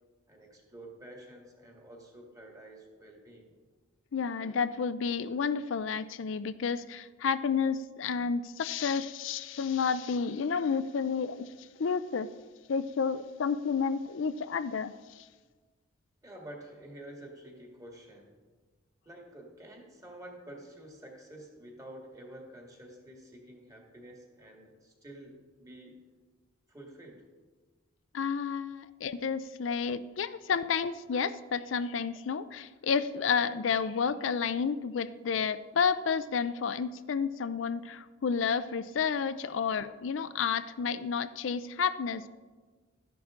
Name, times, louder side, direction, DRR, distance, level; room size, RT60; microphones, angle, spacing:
voice 1, 0.3-3.6 16.2-18.4 19.0-26.0 26.7-27.3 29.7-29.8, right 1 dB, 15° right, 0 dB, 1.9 m, -49 dB
voice 2, 4.1-11.5 11.8-12.3 12.7-15.2 28.1-42.3, left 6 dB, 75° left, 13 dB, 0.4 m, -31 dB
13.0 x 10.5 x 3.7 m, 1.4 s
head